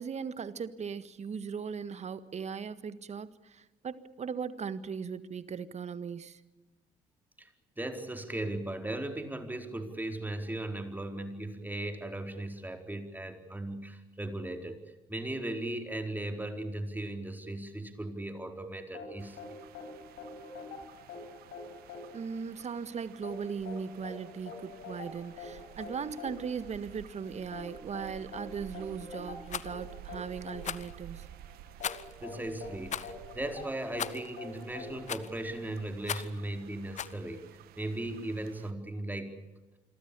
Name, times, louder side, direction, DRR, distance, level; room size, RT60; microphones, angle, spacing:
voice 1, 0.0-6.4 22.1-31.3, right 6 dB, 40° right, 13 dB, 1.7 m, -38 dB
voice 2, 7.8-14.8 15.1-19.4 32.2-37.4 37.8-39.3, right 1 dB, 10° right, 4 dB, 4.5 m, -37 dB
sound 1, 18.9-35.8, left 4 dB, 65° left, 8.0 m, -46 dB
sound 2, 19.2-38.7, right 13 dB, 65° right, 1.3 m, -53 dB
Rattle, 29.5-29.7 30.6-30.9 31.8-32.2 32.9-33.1 34.0-34.3 35.1-35.4 36.0-36.4 37.0-37.2, left 8 dB, 45° left, 1.0 m, -37 dB
27.0 x 23.0 x 7.0 m, 1.1 s
hypercardioid pair, 50°, 17 cm